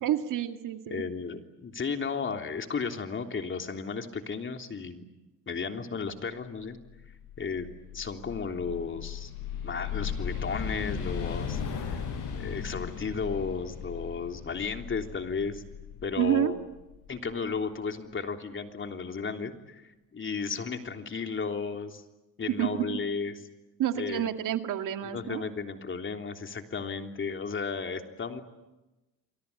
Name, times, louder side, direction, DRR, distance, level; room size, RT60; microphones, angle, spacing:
voice 1, 0.0-1.0 16.2-16.5 22.6-23.0 23.8-25.4, right 11 dB, 65° right, 7 dB, 2.3 m, -29 dB
voice 2, 0.9-5.0 5.5-6.8 7.4-7.7 7.9-9.3 9.6-12.0 12.3-15.6 16.0-16.6 17.1-22.0 22.4-23.4 24.0-24.3 25.0-28.4, left 5 dB, 35° left, 5 dB, 3.4 m, -34 dB
sound 1, 6.8-17.6, left 7 dB, 65° left, 7.3 m, -37 dB
29.0 x 23.5 x 8.6 m, 1.0 s
supercardioid pair, 85°, 34 cm